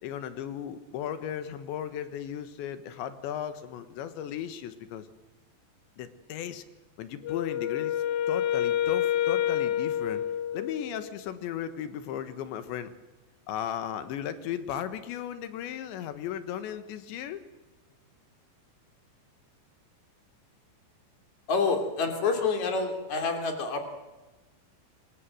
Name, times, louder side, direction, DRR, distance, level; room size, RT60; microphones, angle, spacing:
voice 1, 0.0-5.1 6.0-6.6 7.0-10.3 10.5-12.9 13.5-17.4, left 9 dB, 90° left, 11 dB, 3.7 m, -36 dB
Wind instrument woodwind instrument, 7.2-11.1, left 10 dB, 70° left, 1.8 m, -28 dB
voice 2, 21.5-23.8, left 4 dB, 45° left, 5 dB, 4.0 m, -27 dB
26.0 x 22.0 x 7.7 m, 1.1 s
omnidirectional pair, 5.1 m